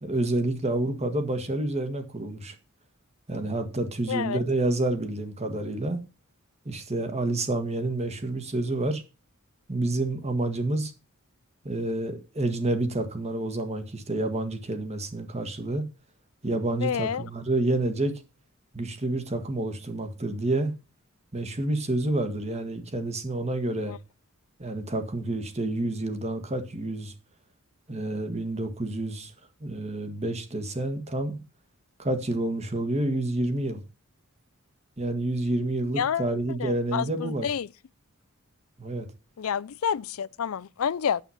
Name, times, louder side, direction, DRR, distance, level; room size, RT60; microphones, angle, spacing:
voice 1, 0.0-2.5 3.3-6.0 6.6-9.0 9.7-10.9 11.6-15.8 16.4-18.1 18.7-20.7 21.3-23.9 24.6-27.1 27.9-29.3 29.6-31.4 32.0-33.8 35.0-37.5 38.8-39.1, right 2 dB, 30° right, 1.7 m, -29 dB
voice 2, 4.1-4.4 16.8-17.3 23.9-24.0 36.0-36.3 36.6-37.7 39.4-41.2, left 8 dB, 75° left, 0.4 m, -29 dB
9.1 x 8.0 x 5.8 m
head